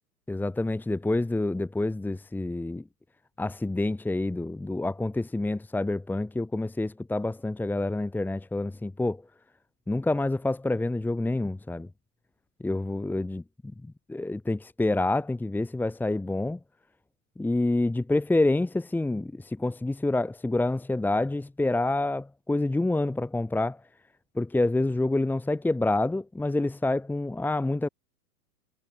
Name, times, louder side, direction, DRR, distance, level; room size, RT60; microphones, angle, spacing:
voice 1, 0.3-2.8 3.4-9.2 9.9-11.9 12.6-13.4 14.1-16.6 17.4-23.8 24.4-27.9, left 2 dB, 5° left, 2.3 m, -27 dB
hypercardioid pair, 140°, 48 cm